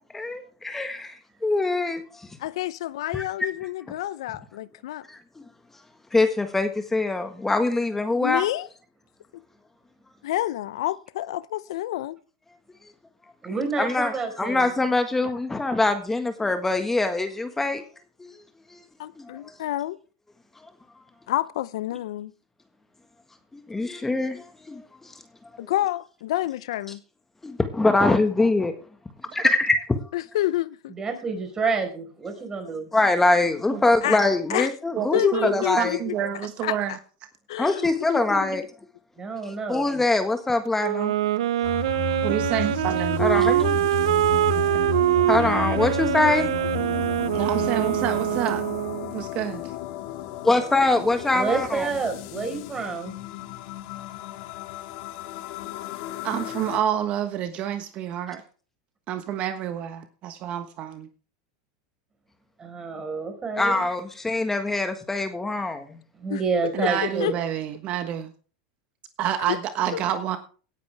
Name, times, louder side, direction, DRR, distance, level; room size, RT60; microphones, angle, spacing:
voice 1, 0.1-1.1 1.4-2.3 3.1-3.2 5.1-5.2 6.1-8.4 13.8-17.8 18.2-18.3 18.7-18.8 19.4-19.5 23.7-25.1 27.4-28.7 29.3-29.7 32.9-36.0 37.6-38.6 39.4-41.1 43.2-43.8 45.3-46.5 50.4-51.9 63.6-66.0, left 2 dB, 10° left, 7 dB, 1.6 m, -23 dB
voice 2, 2.4-5.0 8.2-8.7 10.2-12.2 19.0-20.0 21.3-22.3 25.6-27.0 30.1-30.9 34.0-34.2 34.5-34.7 35.1-36.2 36.6-36.8 37.5-38.5 66.3-66.4 66.8-67.3 69.5-69.6 69.9-70.0, left 14 dB, 80° left, 17 dB, 0.6 m, -28 dB
voice 3, 13.4-14.7 31.0-32.9 39.2-39.8 51.3-53.1 62.6-63.8 66.2-67.3, right 4 dB, 20° right, 6 dB, 4.7 m, -28 dB
voice 4, 35.3-37.0 42.2-43.3 47.3-48.6 49.1-49.6 56.2-58.4 59.1-61.1 66.7-68.3 69.2-70.4, right 10 dB, 45° right, 9 dB, 1.3 m, -28 dB
Wind instrument woodwind instrument, 40.8-49.1, right 13 dB, 85° right, 0.6 m, -24 dB
sound 1, 41.6-56.8, left 14 dB, 60° left, 1.8 m, -33 dB
17.5 x 9.5 x 3.5 m, 0.38 s
supercardioid pair, 120°, 3 cm